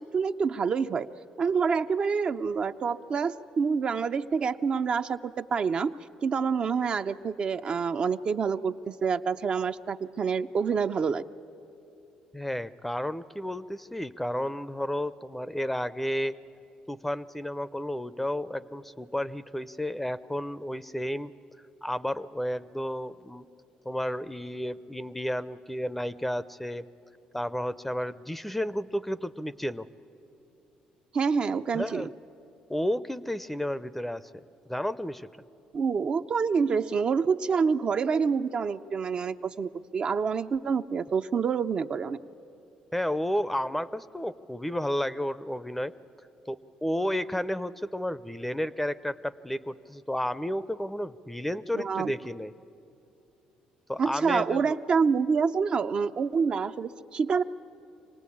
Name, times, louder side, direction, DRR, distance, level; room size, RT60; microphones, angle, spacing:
voice 1, 0.1-1.1 1.4-6.0 6.2-11.2 31.1-32.1 35.7-42.2 51.7-52.1 54.0-57.4, right 5 dB, 45° right, 8 dB, 0.6 m, -27 dB
voice 2, 12.3-16.4 16.9-21.3 21.8-23.5 23.8-26.8 27.3-29.9 31.7-32.1 32.7-34.4 34.7-35.3 42.9-45.9 46.5-52.5 53.9-54.8, equal, 5° left, 16 dB, 0.6 m, -32 dB
25.5 x 18.5 x 8.5 m, 2.8 s
supercardioid pair, 80°, 2 cm